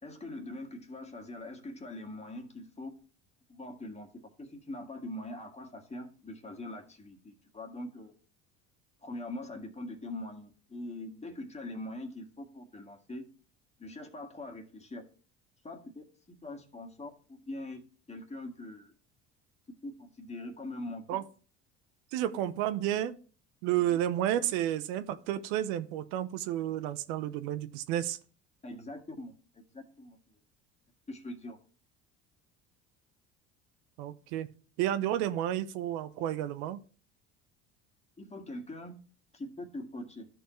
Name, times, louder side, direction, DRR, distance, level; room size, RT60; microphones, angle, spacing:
voice 1, 0.0-3.0 3.5-8.2 9.0-13.3 13.8-15.1 15.6-16.0 16.4-18.9 19.8-21.2 23.9-24.0 28.6-30.2 31.1-31.6 38.2-39.0 39.3-40.3, left 1 dB, 20° left, 3 dB, 1.8 m, -43 dB
voice 2, 22.1-23.2 23.6-28.2 34.0-34.5 34.8-36.8, right 12 dB, 80° right, 11 dB, 0.8 m, -31 dB
12.5 x 4.5 x 3.1 m, 0.39 s
supercardioid pair, 80°, 33 cm